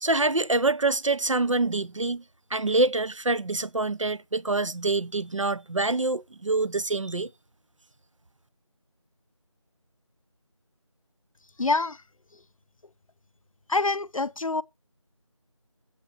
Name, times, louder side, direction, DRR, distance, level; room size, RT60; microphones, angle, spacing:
voice 1, 0.0-2.2 2.5-7.3, right 2 dB, 70° right, 0.7 m, -26 dB
voice 2, 11.6-12.0 13.7-14.6, left 3 dB, 80° left, 0.6 m, -25 dB
9.3 x 8.0 x 4.3 m
figure-of-eight pair, 180°, 17 cm